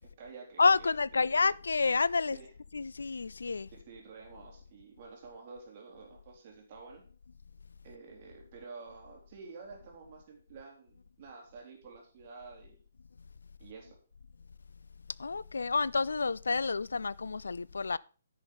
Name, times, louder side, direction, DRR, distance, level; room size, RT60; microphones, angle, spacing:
voice 1, 0.0-1.4 2.3-2.5 3.9-7.0 7.8-12.8 13.6-14.0, right 4 dB, 35° right, 3.7 m, -50 dB
voice 2, 0.6-2.4 2.7-3.7 15.2-18.0, left 4 dB, 65° left, 0.4 m, -29 dB
10.0 x 6.4 x 5.3 m
figure-of-eight pair, 130°, 0 cm